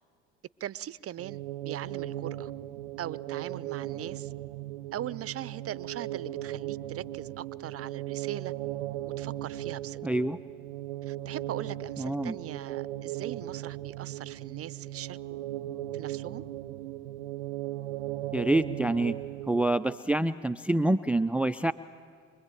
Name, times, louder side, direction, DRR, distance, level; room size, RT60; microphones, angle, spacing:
voice 1, 0.6-2.5 3.0-4.3 4.9-8.5 9.0-10.0 11.0-15.4 15.9-16.4, right 11 dB, 40° right, 0.7 m, -40 dB
sound 1, 1.2-20.0, right 14 dB, 90° right, 0.7 m, -37 dB
voice 2, 10.0-10.4 12.0-12.3 18.3-19.2 19.5-21.7, right 2 dB, 5° right, 0.5 m, -26 dB
25.0 x 21.5 x 9.1 m
hypercardioid pair, 65°, 34 cm